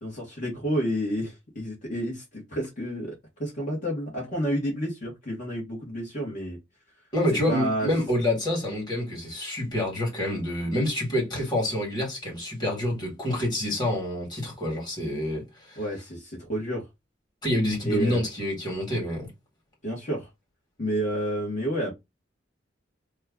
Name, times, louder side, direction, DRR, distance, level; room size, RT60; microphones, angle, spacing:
voice 1, 0.0-6.6 7.5-7.9 15.8-16.8 17.8-18.2 19.8-20.3 20.8-21.9, equal, 45° left, 1.3 m, -30 dB
voice 2, 7.1-15.8 17.4-19.3, left 1 dB, 25° left, 1.8 m, -27 dB
3.0 x 2.3 x 3.5 m
head